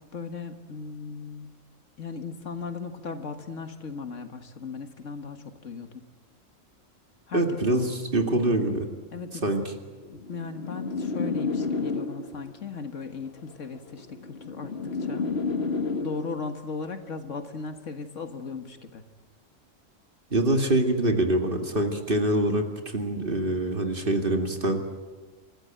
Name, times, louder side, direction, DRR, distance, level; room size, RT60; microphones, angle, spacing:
voice 1, 0.0-1.5 2.0-6.0 7.3-7.9 9.1-9.6 10.1-15.3 16.0-19.0, left 4 dB, 70° left, 7 dB, 1.9 m, -37 dB
voice 2, 7.3-8.9 9.4-9.7 20.3-24.9, right 1 dB, 45° right, 4 dB, 2.4 m, -25 dB
sound 1, 10.1-12.5 13.5-16.5, left 4 dB, 50° left, 1.7 m, -31 dB
26.0 x 15.0 x 9.0 m, 1.4 s
omnidirectional pair, 1.4 m